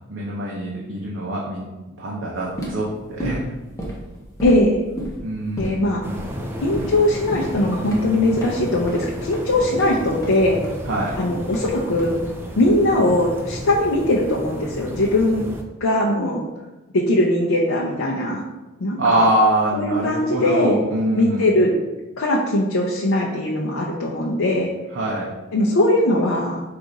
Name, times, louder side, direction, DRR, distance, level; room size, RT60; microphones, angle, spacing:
voice 1, 0.0-1.7 2.0-3.4 5.2-5.9 10.8-11.2 19.0-21.5 24.9-25.3, right 1 dB, 60° right, -4 dB, 0.7 m, -23 dB
sound 1, 2.4-12.6, right 1 dB, 15° left, 0.8 m, -34 dB
voice 2, 4.4-4.8 5.6-6.0 6.6-10.6 11.2-12.2 12.6-15.4 15.8-16.4 16.9-18.4 18.8-19.2 19.7-20.8 21.1-21.7 22.2-24.7 25.5-26.6, left 1 dB, 75° left, -4 dB, 0.5 m, -20 dB
sound 2, 6.0-15.6, equal, 10° right, 0.3 m, -33 dB
4.7 x 2.5 x 3.9 m, 1.1 s
head